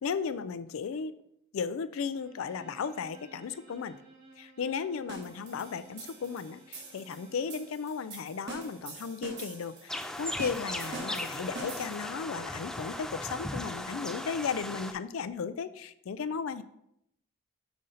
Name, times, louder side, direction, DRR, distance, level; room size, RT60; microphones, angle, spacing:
voice 1, 0.0-1.1 1.5-4.0 4.4-16.6, left 6 dB, 75° left, 13 dB, 0.4 m, -35 dB
Bowed string instrument, 2.1-7.8, right 2 dB, 85° right, 2.0 m, -56 dB
sound 1, 5.1-12.2, right 3 dB, 55° right, 1.2 m, -45 dB
sound 2, 9.9-14.9, left 1 dB, 5° left, 0.3 m, -37 dB
5.1 x 3.9 x 5.6 m, 0.77 s
head